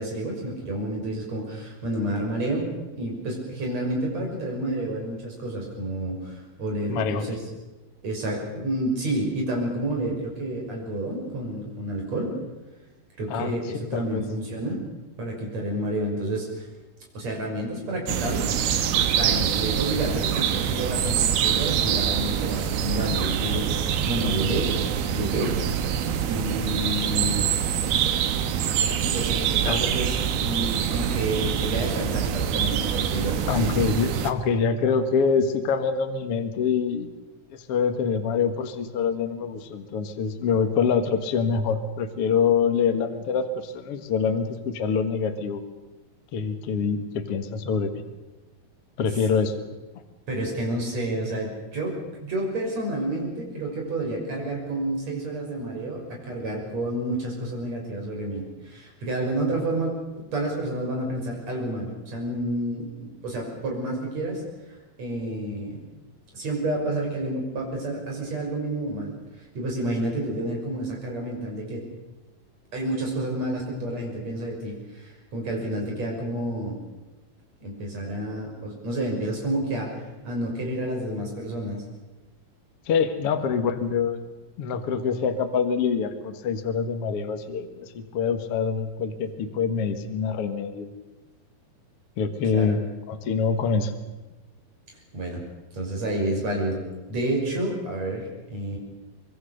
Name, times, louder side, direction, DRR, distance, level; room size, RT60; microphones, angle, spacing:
voice 1, 0.0-2.7 2.9-7.4 8.0-12.4 13.2-14.8 15.2-16.7 17.1-18.5 19.0-24.8 25.1-25.5 26.3-27.5 29.0-33.8 50.3-64.4 65.0-65.8 66.3-69.1 69.6-71.9 72.7-76.8 77.6-79.9 80.2-81.8 92.4-92.8 95.1-95.4 95.7-96.8 97.1-98.8, right 1 dB, 45° right, 0 dB, 7.2 m, -29 dB
voice 2, 6.9-7.3 13.3-14.2 29.7-29.8 33.5-37.1 37.7-45.6 46.3-48.0 49.0-49.5 82.9-84.2 84.6-90.9 92.2-92.8 93.1-93.9, left 6 dB, 50° left, 7 dB, 2.0 m, -25 dB
sound 1, 18.1-34.3, right 8 dB, 85° right, 3.2 m, -25 dB
25.0 x 22.5 x 6.7 m, 1.1 s
omnidirectional pair, 4.3 m